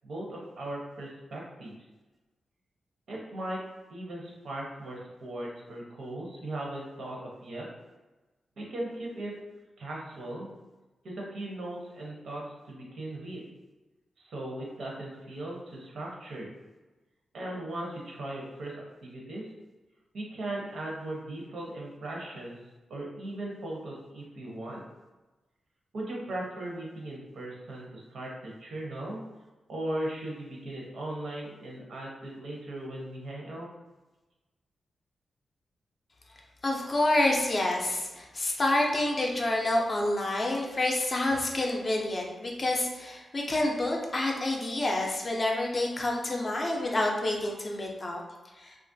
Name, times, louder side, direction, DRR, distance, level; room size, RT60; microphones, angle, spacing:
voice 1, 0.0-1.8 3.1-3.6 3.9-7.7 8.6-9.3 9.8-10.5 11.0-13.4 14.2-16.5 17.3-19.5 20.1-22.6 22.9-24.8 25.9-29.2 29.7-33.7, right 1 dB, 70° right, -2 dB, 0.7 m, -38 dB
voice 2, 36.6-48.2 48.6-48.8, left 1 dB, 30° left, 0 dB, 0.4 m, -28 dB
2.9 x 2.4 x 2.6 m, 1.2 s
wide cardioid pair, 150°, 0 cm